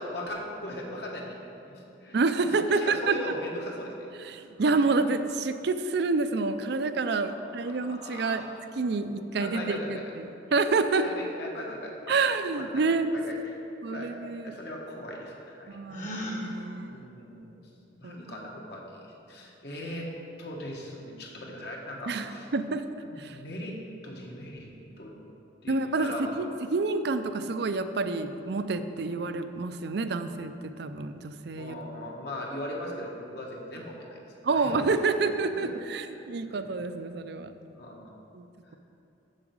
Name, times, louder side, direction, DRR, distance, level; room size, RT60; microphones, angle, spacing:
voice 1, 0.0-1.4 1.6-2.2 2.7-4.1 7.3-8.6 9.3-10.0 10.9-12.3 12.5-12.8 13.1-13.3 13.9-14.1 14.4-16.5 16.9-17.6 17.9-20.1 20.4-22.5 23.0-23.8 24.0-24.7 25.0-25.2 25.6-26.4 31.6-34.2 34.5-34.8 35.5-35.7 36.1-36.6 37.7-38.1, left 1 dB, 60° left, -1 dB, 1.5 m, -39 dB
voice 2, 2.1-3.2 4.3-8.5 8.8-11.1 12.1-13.1 13.8-14.5 15.7-17.0 18.0-18.2 22.1-22.8 23.2-23.4 25.7-31.8 34.4-37.5 38.3-38.5, right 3 dB, 60° right, 10 dB, 0.5 m, -28 dB
Gasp, 15.9-16.4, equal, 40° left, 1.4 m, -34 dB
7.4 x 7.0 x 6.3 m, 2.9 s
head